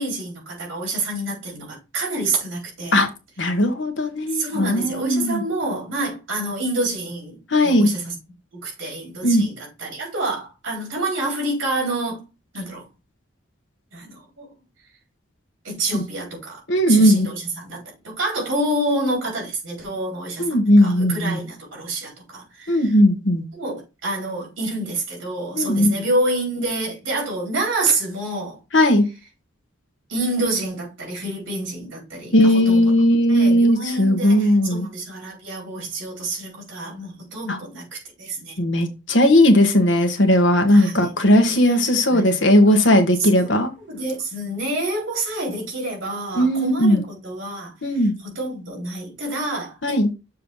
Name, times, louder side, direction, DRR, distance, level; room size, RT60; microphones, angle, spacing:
voice 1, 0.0-3.0 4.3-7.4 7.6-8.1 8.5-12.3 12.5-12.9 13.9-14.5 15.6-16.6 16.9-17.8 18.0-23.0 23.5-28.6 30.1-33.0 33.3-38.6 40.7-41.0 41.3-42.3 43.2-43.5 43.9-47.8 48.2-50.2, right 2 dB, 70° right, 4.0 m, -28 dB
voice 2, 3.4-5.4 7.5-7.9 9.2-9.5 15.9-16.0 16.7-17.3 20.4-21.4 22.7-23.4 25.6-26.0 28.7-29.1 32.3-34.9 37.5-37.6 38.6-43.7 46.3-47.0 47.8-48.1 49.8-50.1, left 1 dB, 65° left, 1.2 m, -17 dB
6.9 x 3.2 x 5.3 m
head